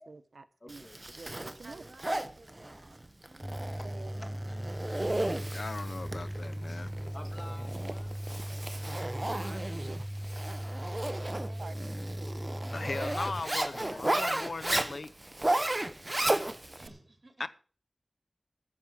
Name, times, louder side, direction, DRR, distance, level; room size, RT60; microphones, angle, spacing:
voice 1, 0.1-0.9 1.2-1.8 3.8-4.3 4.5-4.7 8.5-8.8 9.7-10.0 11.6-11.7 12.2-12.4, right 3 dB, 90° right, 1.0 m, -48 dB
voice 2, 0.6-1.0 3.8-4.7 5.9-6.1 7.1-8.2 8.6-9.7 10.1-11.5 13.7-14.0 17.4-17.5, left 1 dB, 35° left, 2.8 m, -52 dB
Zipper (clothing), 0.7-16.9, right 1 dB, 30° right, 1.2 m, -34 dB
voice 3, 1.6-3.7 4.2-4.5 11.0-12.3 16.7-17.5, right 2 dB, 55° right, 3.6 m, -55 dB
sound 1, 3.4-13.4, equal, 5° left, 0.5 m, -38 dB
voice 4, 5.5-6.9 12.7-15.1 17.4-17.5, left 3 dB, 80° left, 0.7 m, -38 dB
13.5 x 7.3 x 7.3 m
wide cardioid pair, 50°, 0 cm